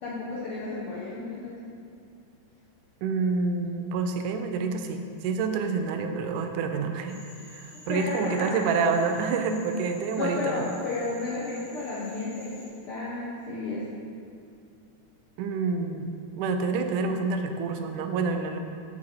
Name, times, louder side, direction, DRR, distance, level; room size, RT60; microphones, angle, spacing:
voice 1, 0.0-1.5 7.7-8.6 10.1-13.9, left 3 dB, 75° left, -6 dB, 1.2 m, -32 dB
voice 2, 3.0-7.2 7.5-10.7 15.4-18.6, right 4 dB, 85° right, 6 dB, 2.1 m, -28 dB
Cricket / Frog, 7.1-12.7, left 1 dB, 40° left, 2.3 m, -50 dB
7.5 x 6.1 x 4.3 m, 2.4 s
omnidirectional pair, 3.6 m